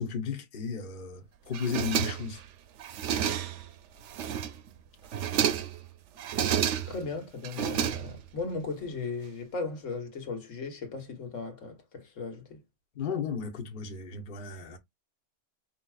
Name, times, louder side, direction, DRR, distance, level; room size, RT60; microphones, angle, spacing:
voice 1, 0.0-2.4 13.0-14.8, left 6 dB, 45° left, 1.0 m, -34 dB
sound 1, 1.5-2.4 2.8-3.7 4.1-4.7 5.0-5.8 6.2-7.1 7.4-8.4, right 9 dB, 75° right, 0.9 m, -30 dB
voice 2, 6.9-12.6, left 4 dB, 90° left, 1.6 m, -37 dB
5.3 x 2.8 x 2.3 m
omnidirectional pair, 1.3 m